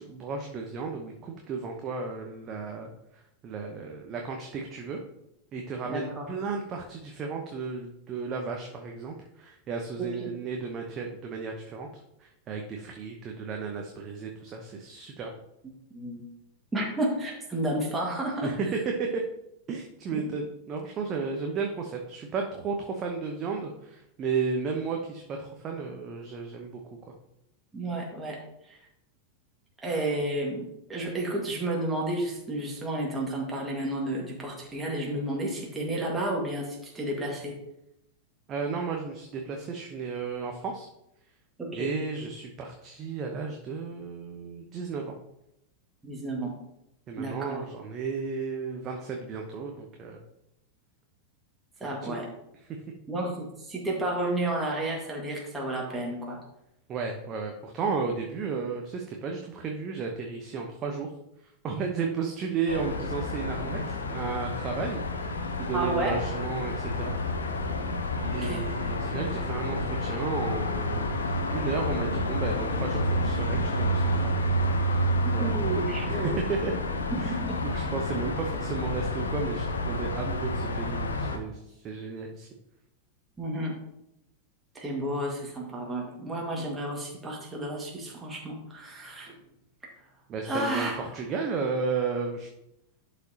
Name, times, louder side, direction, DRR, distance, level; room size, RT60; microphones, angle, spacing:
voice 1, 0.0-5.0 5.5-11.9 12.2-15.3 18.4-18.7 19.0-19.2 19.7-26.8 38.5-40.9 41.7-45.2 47.1-50.2 51.8-52.2 52.6-52.8 56.9-61.1 61.6-65.3 65.6-67.2 68.3-74.4 74.8-75.6 76.1-76.7 77.2-82.5 90.3-92.5, right 5 dB, 30° right, 2 dB, 0.9 m, -34 dB
voice 2, 5.9-6.3 10.0-10.3 15.9-16.2 16.7-18.6 20.1-20.2 27.7-28.4 28.7-28.8 29.8-37.5 41.6-41.9 46.0-46.5 47.2-47.6 51.8-52.3 53.1-56.4 65.7-66.2 68.4-68.6 75.2-76.3 77.3-77.6 83.4-83.7 84.8-89.4 90.4-91.0, right 1 dB, 10° right, -2 dB, 1.8 m, -31 dB
sound 1, 62.7-81.4, left 1 dB, 70° left, 0.8 m, -29 dB
11.5 x 5.1 x 2.9 m, 0.83 s
figure-of-eight pair, 90°, 0 cm